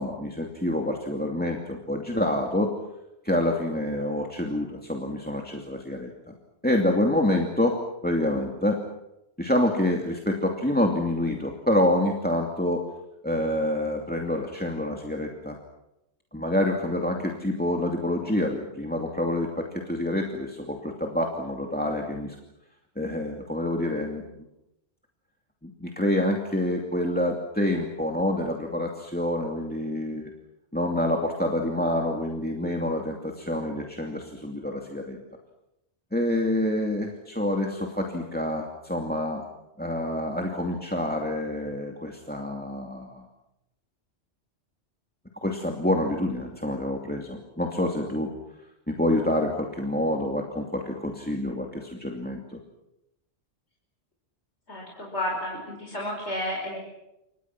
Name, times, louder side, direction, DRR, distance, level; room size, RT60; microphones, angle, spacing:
voice 1, 0.0-2.7 3.2-6.3 6.6-7.8 8.0-8.8 9.4-12.8 13.2-15.6 16.3-22.4 23.0-24.2 25.6-30.3 30.7-35.2 36.1-39.4 39.8-43.2 45.4-48.3 48.9-52.6, left 1 dB, 10° left, 2 dB, 2.5 m, -27 dB
voice 2, 54.7-56.8, left 1 dB, 75° left, -2 dB, 5.8 m, -31 dB
29.0 x 26.0 x 6.1 m, 0.89 s
omnidirectional pair, 1.2 m